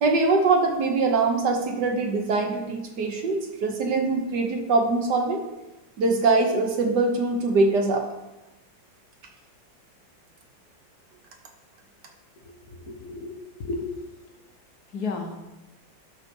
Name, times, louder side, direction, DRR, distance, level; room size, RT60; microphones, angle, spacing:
voice 1, 0.0-5.4 6.0-8.1, right 3 dB, 65° right, 3 dB, 1.6 m, -23 dB
voice 2, 12.7-13.3 13.6-13.9 14.9-15.4, left 3 dB, 55° left, 4 dB, 1.6 m, -32 dB
12.0 x 4.0 x 5.4 m, 1.0 s
omnidirectional pair, 2.0 m